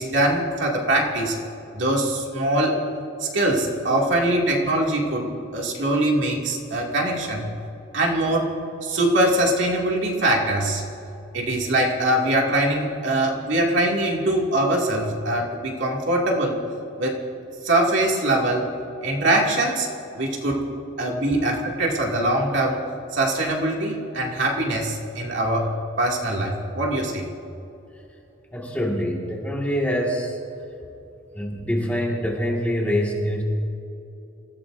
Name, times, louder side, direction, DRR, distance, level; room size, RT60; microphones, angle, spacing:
voice 1, 0.0-1.4 1.7-2.8 3.2-7.5 7.9-8.5 8.8-10.8 11.3-16.6 17.0-17.2 17.6-18.7 19.0-19.9 20.2-20.7 21.0-22.8 23.1-25.7 26.0-27.3, right 1 dB, 60° right, -2 dB, 2.4 m, -22 dB
voice 2, 28.5-30.4 31.3-33.4, equal, 5° left, -3 dB, 1.9 m, -25 dB
27.5 x 15.5 x 2.7 m, 2.9 s
head